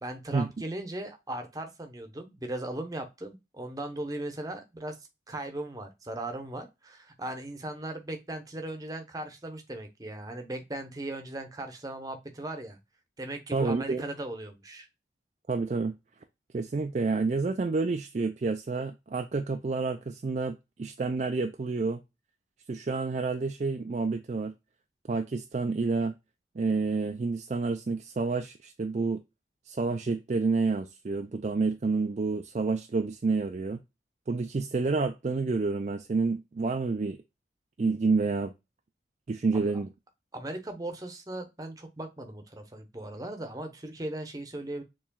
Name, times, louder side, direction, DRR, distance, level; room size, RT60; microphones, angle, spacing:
voice 1, 0.0-5.0 5.3-12.8 13.2-14.9 39.5-39.7 40.3-44.8, right 1 dB, 20° right, 0.8 m, -38 dB
voice 2, 13.5-14.0 15.5-15.9 16.5-22.0 22.7-24.5 25.1-26.1 26.6-29.2 29.7-33.8 34.3-37.2 37.8-38.5 39.3-39.9, right 4 dB, 40° right, 0.4 m, -29 dB
7.1 x 3.0 x 2.2 m
head